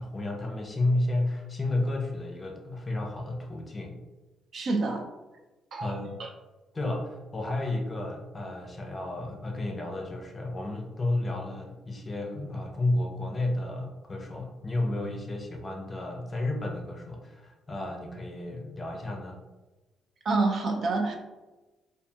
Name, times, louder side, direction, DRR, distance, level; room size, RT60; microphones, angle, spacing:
voice 1, 0.0-4.0 5.8-6.2 6.7-19.4, left 2 dB, 30° left, 2 dB, 0.5 m, -32 dB
voice 2, 4.5-5.0 5.7-6.3 20.3-21.2, right 3 dB, 55° right, 3 dB, 0.4 m, -28 dB
2.6 x 2.6 x 2.3 m, 1.1 s
cardioid pair, 90°, 0 cm